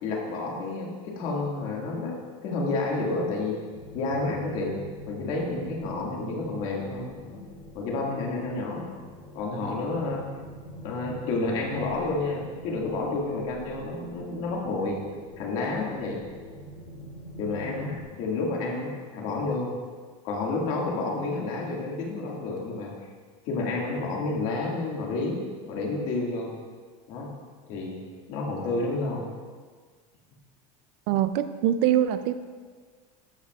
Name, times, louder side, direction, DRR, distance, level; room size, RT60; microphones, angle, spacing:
voice 1, 0.0-2.1 2.4-3.6 3.9-4.8 5.1-7.4 7.7-8.9 9.4-10.3 10.8-15.0 15.4-16.2 17.4-19.7 20.2-23.1 23.4-25.4 25.7-26.6 27.1-27.3 27.7-28.0 28.3-29.3, left 3 dB, 50° left, -2 dB, 1.8 m, -30 dB
sound 1, 3.7-18.0, equal, 30° left, 2.3 m, -44 dB
voice 2, 31.1-32.3, right 11 dB, 50° right, 11 dB, 0.4 m, -23 dB
13.0 x 8.3 x 2.3 m, 1.6 s
cardioid pair, 175°, 16 cm